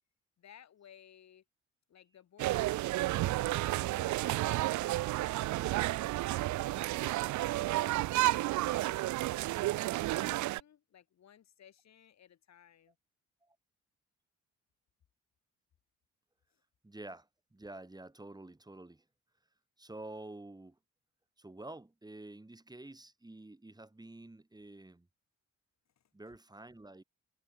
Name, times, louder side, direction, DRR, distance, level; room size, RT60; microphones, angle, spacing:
voice 1, 0.4-1.4 1.9-6.9 7.2-13.0 16.5-16.6 26.0-26.1, left 9 dB, 60° left, 5.3 m, -60 dB
sound 1, 2.4-10.6, right 17 dB, 70° right, 0.5 m, -31 dB
voice 2, 16.8-19.0 19.8-20.8 21.4-25.1 26.1-27.0, right 2 dB, 15° right, 4.3 m, -49 dB
cardioid pair, 90°, 30 cm